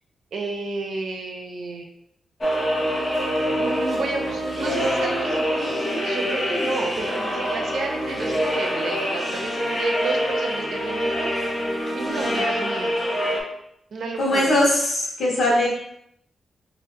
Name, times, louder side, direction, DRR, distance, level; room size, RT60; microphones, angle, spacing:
voice 1, 0.3-1.9 3.5-12.9 13.9-14.6, right 3 dB, 65° right, 2 dB, 0.6 m, -31 dB
sound 1, 2.4-13.4, equal, 25° left, 0.6 m, -25 dB
voice 2, 14.2-15.7, left 1 dB, 60° left, -3 dB, 1.1 m, -20 dB
3.3 x 2.6 x 2.9 m, 0.74 s
wide cardioid pair, 130°, 0 cm